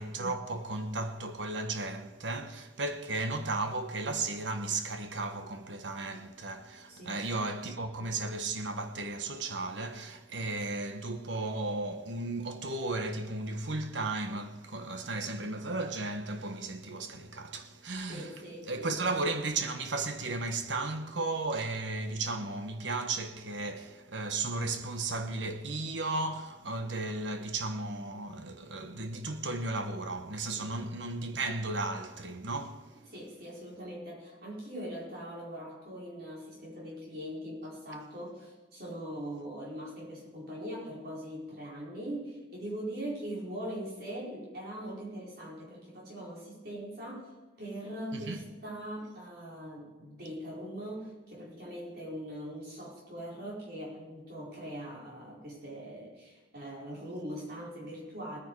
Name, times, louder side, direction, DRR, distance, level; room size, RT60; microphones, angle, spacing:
voice 1, 0.0-33.1 48.1-48.4, right 2 dB, 85° right, 1.3 m, -35 dB
voice 2, 6.9-7.2 18.1-19.0 30.6-30.7 33.1-47.3 47.6-58.4, equal, 55° right, 4.7 m, -41 dB
19.0 x 9.7 x 4.7 m
head